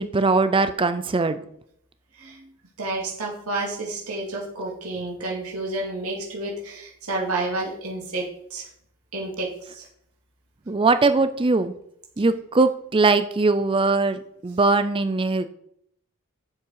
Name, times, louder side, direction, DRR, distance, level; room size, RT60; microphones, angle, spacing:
voice 1, 0.0-1.4 10.7-11.7 12.2-15.5, right 3 dB, 25° right, 11 dB, 0.5 m, -21 dB
voice 2, 2.8-8.3 8.5-8.6 9.1-9.8, right 2 dB, 80° right, -2 dB, 2.3 m, -30 dB
10.5 x 7.6 x 4.7 m, 0.71 s
head